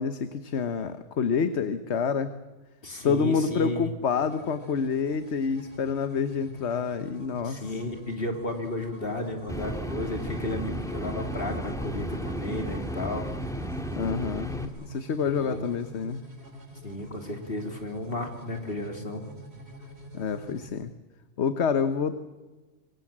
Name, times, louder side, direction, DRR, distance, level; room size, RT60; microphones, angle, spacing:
voice 1, 0.0-2.3 3.0-7.8 13.9-16.2 20.1-20.9 21.4-22.2, left 6 dB, 70° left, 11 dB, 1.3 m, -28 dB
voice 2, 2.8-3.9 7.4-13.3 15.4-15.7 16.8-19.2, left 1 dB, 50° left, 5 dB, 3.5 m, -33 dB
sound 1, 4.0-20.7, equal, 60° right, 4.1 m, -47 dB
sound 2, 9.5-14.7, equal, 5° left, 1.8 m, -34 dB
25.5 x 22.5 x 7.4 m, 1.2 s
omnidirectional pair, 1.2 m